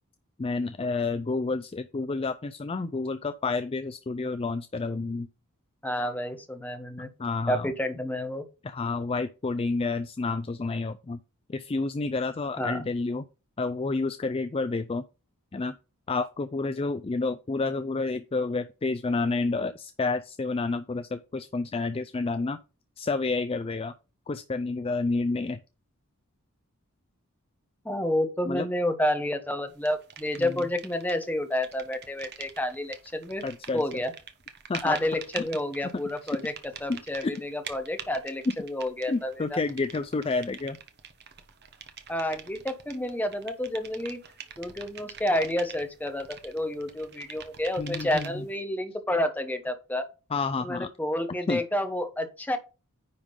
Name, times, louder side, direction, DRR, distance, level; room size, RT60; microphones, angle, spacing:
voice 1, 0.4-5.3 7.2-7.7 8.6-11.2 11.5-13.2 13.6-15.0 15.5-15.7 16.1-22.6 23.0-23.9 24.3-25.6 28.5-28.7 30.4-30.5 33.4-33.8 34.7-35.0 36.3-36.4 36.9-37.3 39.1-40.8 47.8-48.4 50.3-50.9 51.3-51.6, left 3 dB, 25° left, 0.4 m, -29 dB
voice 2, 5.8-7.1 7.5-8.4 12.6-12.9 27.8-33.4 33.7-34.1 34.8-36.5 36.8-39.6 42.1-44.2 44.6-50.1 50.6-52.6, left 1 dB, 5° left, 1.0 m, -30 dB
sound 1, 29.9-31.3 31.5-48.5, right 7 dB, 50° right, 1.1 m, -45 dB
9.8 x 3.7 x 5.3 m
head